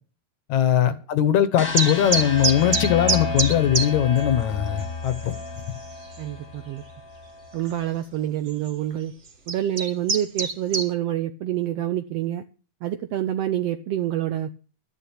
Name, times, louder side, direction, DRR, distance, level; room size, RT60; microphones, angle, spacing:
voice 1, 0.5-5.3, left 10 dB, 70° left, 2.3 m, -20 dB
sound 1, 1.6-7.6, left 3 dB, 30° left, 2.0 m, -32 dB
sound 2, 1.8-3.9 4.2-4.3 4.8-4.9 5.1-5.6 6.1-6.2 7.6-7.7 8.5-8.7 9.3-10.9, right 4 dB, 40° right, 1.0 m, -24 dB
voice 2, 6.2-6.8 7.5-9.1 9.5-12.4 12.8-14.5, right 12 dB, 75° right, 1.5 m, -27 dB
12.5 x 10.0 x 5.8 m
omnidirectional pair, 3.6 m